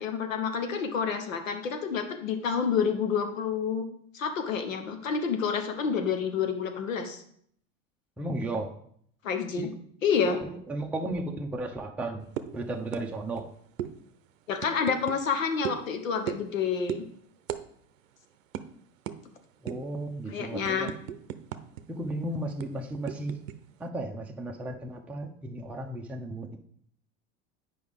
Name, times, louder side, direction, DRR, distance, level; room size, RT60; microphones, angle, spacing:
voice 1, 0.0-3.8 4.1-7.2 9.2-9.7 10.0-10.4 14.5-17.0 20.3-20.9, left 6 dB, 85° left, 6 dB, 1.1 m, -28 dB
voice 2, 8.2-8.7 9.6-9.7 10.4-12.2 12.5-13.5 19.6-20.9 21.9-23.4 23.8-26.6, right 1 dB, 5° right, 0 dB, 0.7 m, -34 dB
sound 1, 12.4-12.6 12.9-13.1 13.3-13.5 13.8-13.9 14.6-15.2 15.6-15.8 16.3-16.5 16.9-17.1 17.5-17.6 17.9-18.1 18.5-18.6 19.1-19.2 19.7-19.9 20.3-21.8 22.1-22.2 22.6-23.6, right 11 dB, 85° right, 0.6 m, -35 dB
8.0 x 5.3 x 3.6 m, 0.65 s
hypercardioid pair, 95°, 38 cm